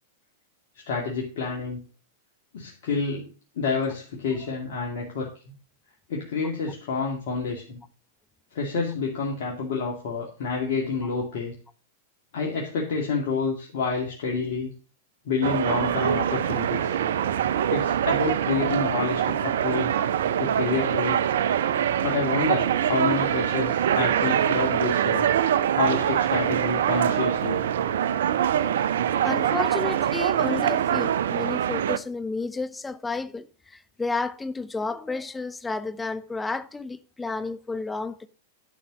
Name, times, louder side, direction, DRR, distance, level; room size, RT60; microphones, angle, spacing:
voice 1, 0.9-1.8 2.5-3.3 3.6-5.5 6.1-7.8 8.5-11.5 12.3-14.7 15.3-16.9 17.7-20.0 20.4-21.2 22.0-25.3 25.8-27.6, left 4 dB, 65° left, 2.3 m, -28 dB
sound 1, 15.4-32.0, right 9 dB, 70° right, 0.6 m, -24 dB
voice 2, 28.0-38.3, left 3 dB, 10° left, 0.7 m, -32 dB
10.5 x 5.7 x 6.3 m
hypercardioid pair, 105°, 0 cm